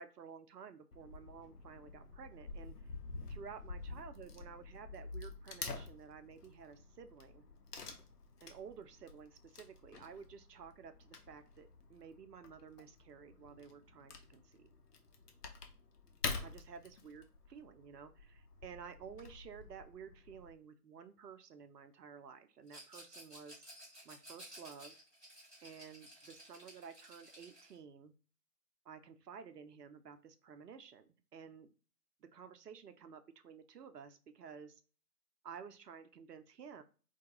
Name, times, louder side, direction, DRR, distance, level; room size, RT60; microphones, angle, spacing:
voice 1, 0.0-2.9 3.3-7.4 8.4-14.7 16.4-23.6 24.0-25.0 25.6-28.1 28.8-31.7 32.2-34.8 35.4-36.8, right 6 dB, 70° right, 9 dB, 0.6 m, -53 dB
Wood / Tearing, 0.9-20.5, left 4 dB, 70° left, 0.7 m, -48 dB
Rattle, 22.7-27.8, equal, 5° left, 0.7 m, -55 dB
2.3 x 2.2 x 2.9 m, 0.39 s
figure-of-eight pair, 145°, 49 cm